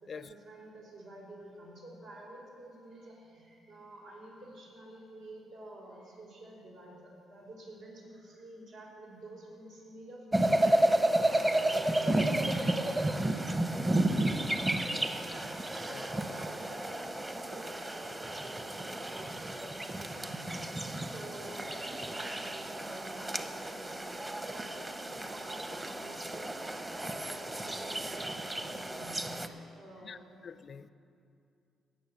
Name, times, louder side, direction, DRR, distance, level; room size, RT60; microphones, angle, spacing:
voice 1, 0.0-15.2 15.8-29.4 29.6-30.4, right 1 dB, 85° right, -4 dB, 4.2 m, -50 dB
sound 1, 10.3-29.5, right 1 dB, 20° right, 0.8 m, -32 dB
voice 2, 30.4-30.9, left 6 dB, 50° left, 15 dB, 0.4 m, -45 dB
18.5 x 6.5 x 7.3 m, 2.5 s
cardioid pair, 90°, 0 cm